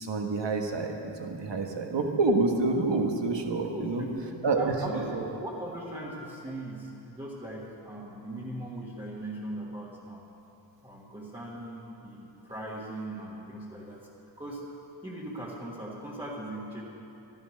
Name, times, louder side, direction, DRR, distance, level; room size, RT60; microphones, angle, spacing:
voice 1, 0.0-4.0 4.4-5.2, right 3 dB, 60° right, 3 dB, 1.4 m, -28 dB
voice 2, 3.7-5.0 5.4-10.2 10.8-14.0 14.4-14.6 15.0-16.8, right 1 dB, 10° right, -7 dB, 1.6 m, -39 dB
13.0 x 11.0 x 6.4 m, 2.9 s
wide cardioid pair, 125°, 49 cm